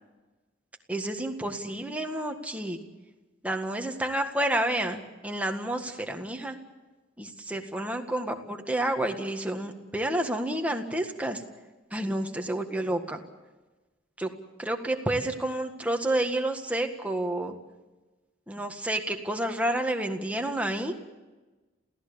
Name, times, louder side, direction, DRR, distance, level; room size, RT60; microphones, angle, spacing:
voice 1, 0.9-2.8 3.4-6.6 7.2-11.4 11.9-13.2 14.2-14.3 14.6-17.5 18.5-20.9, right 1 dB, 5° right, 4 dB, 1.7 m, -30 dB
28.5 x 16.5 x 7.1 m, 1.2 s
head